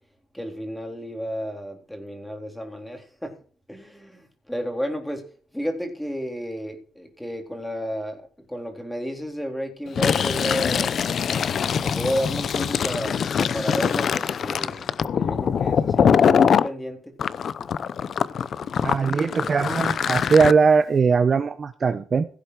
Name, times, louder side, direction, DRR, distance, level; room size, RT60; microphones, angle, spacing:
voice 1, 0.3-3.3 3.7-5.2 5.5-11.0 11.6-17.1, equal, 5° left, 3.7 m, -32 dB
Fill (with liquid), 9.9-16.7 17.2-20.5, left 7 dB, 50° left, 0.7 m, -23 dB
voice 2, 18.8-22.3, right 5 dB, 35° right, 0.9 m, -20 dB
16.5 x 8.0 x 4.8 m
cardioid pair, 115°, 0 cm